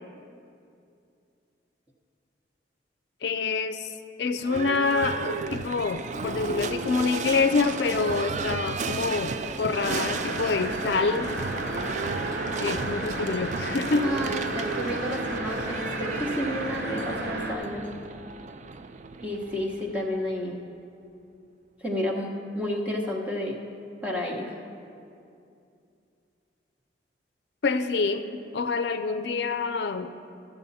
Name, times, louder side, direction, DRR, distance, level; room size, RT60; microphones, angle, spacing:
voice 1, 3.2-3.9 4.2-11.3 12.6-14.1 27.6-30.1, left 4 dB, 70° left, 10 dB, 0.4 m, -26 dB
Livestock farm animals working animals / Bell, 4.4-20.3, right 4 dB, 40° right, 0.4 m, -34 dB
sound 1, 9.7-17.6, right 1 dB, 65° right, 1.2 m, -33 dB
voice 2, 14.0-17.9 19.2-20.6 21.8-23.6 24.0-24.5, equal, 10° right, -1 dB, 1.1 m, -31 dB
14.0 x 7.0 x 4.1 m, 2.5 s
head